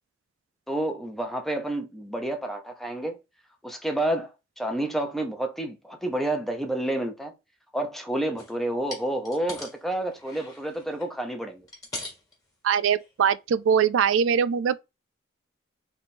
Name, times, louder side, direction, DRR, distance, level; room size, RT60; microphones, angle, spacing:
voice 1, 0.7-3.2 3.6-7.3 7.7-11.7, right 1 dB, ahead, 0.7 m, -29 dB
sound 1, 8.4-8.6 8.9-9.8 10.1-11.1 11.6-12.3 13.0-13.1 13.6-13.7, left 2 dB, 20° left, 1.5 m, -40 dB
voice 2, 12.6-14.8, right 7 dB, 75° right, 0.3 m, -22 dB
3.5 x 3.0 x 4.2 m
head